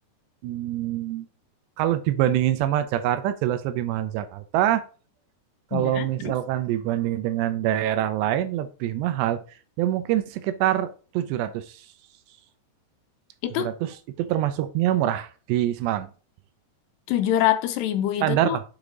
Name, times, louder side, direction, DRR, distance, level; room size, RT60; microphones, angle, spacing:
voice 1, 0.4-1.3 1.8-4.8 5.7-9.4 9.8-11.8 13.6-16.1 18.2-18.6, right 12 dB, 80° right, 2.8 m, -25 dB
voice 2, 5.7-6.3 13.4-13.7 17.1-18.6, left 12 dB, 80° left, 2.7 m, -25 dB
7.1 x 5.0 x 3.8 m
omnidirectional pair, 5.1 m